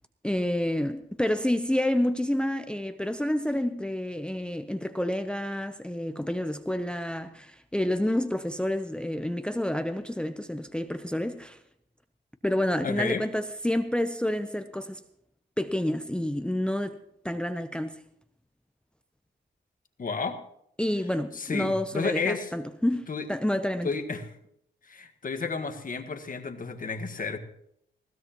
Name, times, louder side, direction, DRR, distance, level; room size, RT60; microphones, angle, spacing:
voice 1, 0.2-11.6 12.4-15.0 15.6-17.0 17.2-18.0 20.8-23.9, left 1 dB, 5° left, 0.7 m, -29 dB
voice 2, 12.8-13.2 20.0-20.4 21.3-22.5 23.1-23.3 23.8-24.3 24.8-27.4, left 4 dB, 45° left, 1.5 m, -31 dB
20.5 x 16.0 x 3.0 m
cardioid pair, 90°, 19 cm